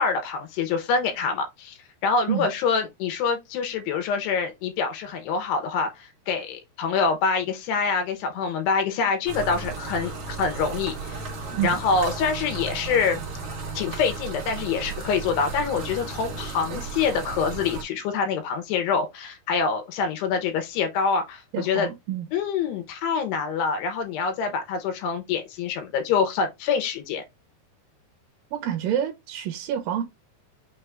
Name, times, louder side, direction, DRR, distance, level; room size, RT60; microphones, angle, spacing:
voice 1, 0.0-1.8 2.0-11.2 11.6-13.2 13.8-21.9 22.3-27.2, left 5 dB, 80° left, 3.0 m, -26 dB
sound 1, 9.3-17.8, right 4 dB, 50° right, 1.7 m, -34 dB
voice 2, 21.5-22.3 28.5-30.0, right 10 dB, 70° right, 2.3 m, -28 dB
6.3 x 2.5 x 3.3 m
omnidirectional pair, 4.8 m